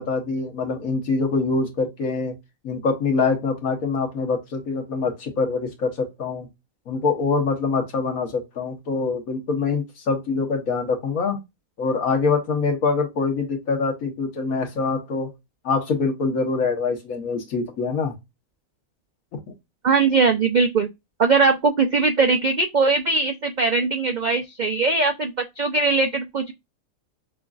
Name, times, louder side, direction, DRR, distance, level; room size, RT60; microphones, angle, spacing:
voice 1, 0.0-2.3 2.6-6.5 6.9-11.4 11.8-15.3 15.6-18.1 19.3-19.4, left 4 dB, 70° left, 1.6 m, -24 dB
voice 2, 19.8-20.9 21.2-26.5, right 4 dB, 75° right, 0.4 m, -20 dB
5.9 x 2.6 x 2.4 m
omnidirectional pair, 1.5 m